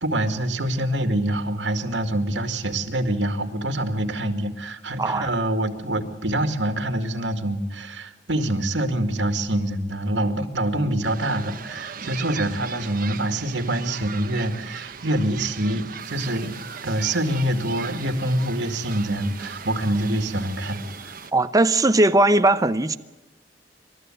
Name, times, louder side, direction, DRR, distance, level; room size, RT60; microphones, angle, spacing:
voice 1, 0.0-16.5 16.8-21.2, right 1 dB, 80° right, 7 dB, 2.2 m, -25 dB
voice 2, 5.0-5.3 21.3-23.0, right 2 dB, 20° right, 10 dB, 0.7 m, -18 dB
sound 1, 11.0-21.3, right 7 dB, 50° right, 1.2 m, -38 dB
sound 2, 16.0-21.3, right 1 dB, 10° left, 7.0 m, -51 dB
27.5 x 13.0 x 7.8 m, 1.1 s
head